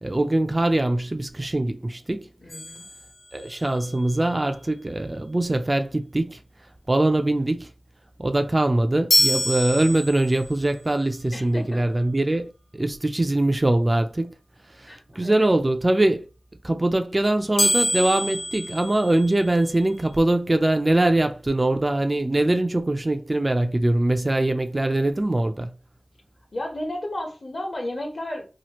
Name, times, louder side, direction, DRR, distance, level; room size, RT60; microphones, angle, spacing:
voice 1, 0.0-2.3 3.3-6.4 6.9-7.7 8.2-14.3 14.8-16.3 16.6-25.7, right 1 dB, 25° right, 0.3 m, -22 dB
voice 2, 2.4-2.9 11.3-11.8 14.9-15.5 26.5-28.5, left 1 dB, 50° left, 1.1 m, -33 dB
sound 1, 2.5-3.8 9.1-10.6 17.6-19.7, left 1 dB, 70° left, 0.7 m, -26 dB
2.9 x 2.4 x 2.9 m
wide cardioid pair, 80°, 0 cm